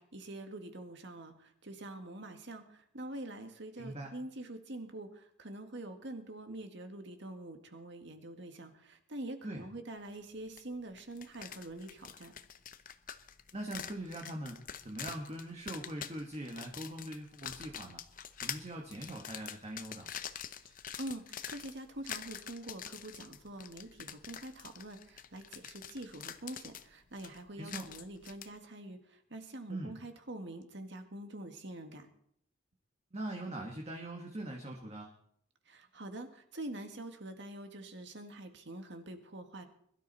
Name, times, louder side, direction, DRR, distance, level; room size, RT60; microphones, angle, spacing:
voice 1, 0.0-12.3 20.6-32.1 35.7-39.7, right 1 dB, 60° right, 6 dB, 2.0 m, -45 dB
voice 2, 3.7-4.1 9.4-9.7 13.5-18.0 18.4-20.1 27.6-27.9 29.7-29.9 33.1-35.1, right 1 dB, 30° right, 1 dB, 1.6 m, -42 dB
sound 1, 10.6-10.7 11.0-28.5, left 9 dB, 40° left, 0.8 m, -46 dB
22.0 x 12.5 x 4.2 m, 0.67 s
head